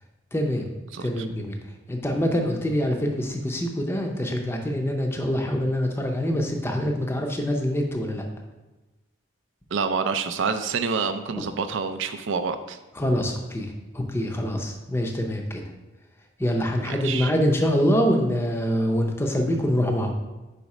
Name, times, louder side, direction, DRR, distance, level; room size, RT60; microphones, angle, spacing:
voice 1, 0.3-0.7 1.0-1.6 1.9-8.2 11.4-11.5 13.0-15.6 16.4-20.1, equal, 10° left, 2 dB, 0.6 m, -25 dB
voice 2, 9.7-12.8 16.8-17.3, right 5 dB, 65° right, 10 dB, 0.4 m, -27 dB
5.1 x 4.2 x 4.8 m, 1.1 s
head